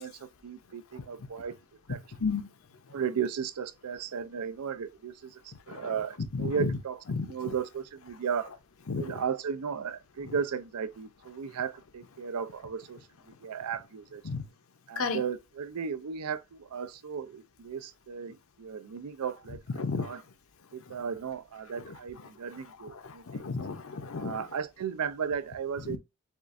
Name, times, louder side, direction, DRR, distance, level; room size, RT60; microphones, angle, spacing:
voice 1, 0.0-1.5 1.9-2.0 2.9-7.0 7.3-8.5 9.0-13.0 13.4-14.2 14.9-19.6 20.0-20.2 20.7-23.2 24.1-26.0, right 7 dB, 90° right, 0.5 m, -35 dB
voice 2, 5.7-6.0 6.3-6.8 7.1-7.5 8.9-9.2 10.2-10.3 14.2-14.4 15.0-15.2 19.7-20.1 21.8-22.0 23.0-24.5 25.8-26.0, left 4 dB, 65° left, 0.7 m, -33 dB
7.1 x 2.4 x 2.5 m
head